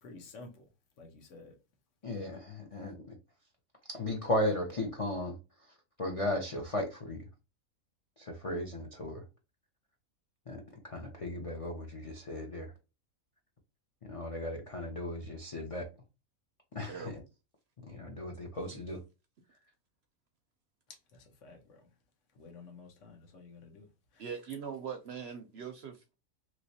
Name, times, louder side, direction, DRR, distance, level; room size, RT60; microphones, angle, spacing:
voice 1, 0.0-1.5 21.1-21.9 22.3-24.3, left 3 dB, 60° left, 1.3 m, -52 dB
voice 2, 2.0-3.2 3.9-5.4 6.0-7.3 8.2-9.2 10.5-12.7 14.0-15.9 16.7-17.1 17.9-19.0, left 1 dB, 40° left, 0.5 m, -36 dB
voice 3, 24.2-26.2, right 7 dB, 65° right, 0.7 m, -41 dB
3.1 x 3.0 x 2.7 m
omnidirectional pair, 1.5 m